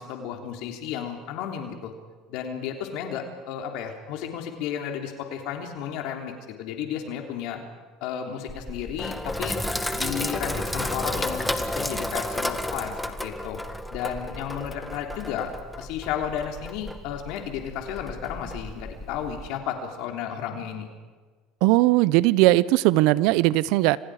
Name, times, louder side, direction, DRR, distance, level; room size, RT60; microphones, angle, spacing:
voice 1, 0.0-1.9 2.3-6.3 6.6-7.6 8.0-9.6 9.9-13.6 13.9-15.5 15.8-20.9, left 8 dB, 70° left, 3 dB, 3.4 m, -33 dB
Sink (filling or washing), 8.5-19.5, left 1 dB, 5° left, 1.7 m, -32 dB
voice 2, 21.6-24.0, right 17 dB, 70° right, 19 dB, 0.8 m, -19 dB
30.0 x 25.5 x 5.0 m, 1.4 s
supercardioid pair, 110°, 0 cm